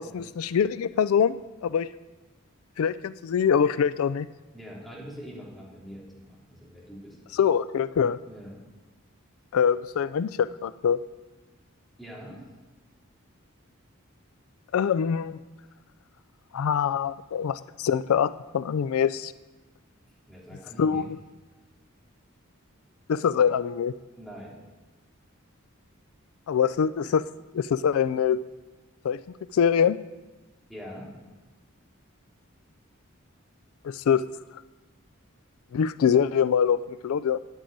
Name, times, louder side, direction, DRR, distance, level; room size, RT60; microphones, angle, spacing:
voice 1, 0.0-1.9 2.8-4.3 7.3-8.2 9.5-11.0 14.7-15.4 16.5-19.3 20.8-21.2 23.1-23.9 26.5-27.2 27.5-28.4 29.0-29.2 29.5-30.0 33.8-34.2 35.7-37.4, left 7 dB, 90° left, 16 dB, 0.4 m, -24 dB
voice 2, 4.5-7.2 8.3-8.5 12.0-12.4 20.3-21.0 24.2-24.6 30.7-31.1, equal, ahead, -6 dB, 3.4 m, -43 dB
9.0 x 8.7 x 9.3 m, 1.2 s
head